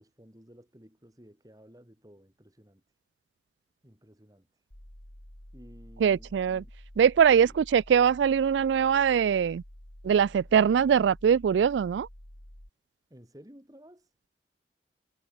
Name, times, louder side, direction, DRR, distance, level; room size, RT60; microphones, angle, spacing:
voice 1, 0.0-2.8 3.8-4.5 5.5-6.7 7.3-7.6 13.1-14.3, equal, 20° right, 3.6 m, -54 dB
sound 1, 4.7-12.7, equal, 80° left, 4.6 m, -49 dB
voice 2, 6.0-6.6 7.0-9.6 10.0-12.1, right 7 dB, 90° right, 0.3 m, -22 dB
head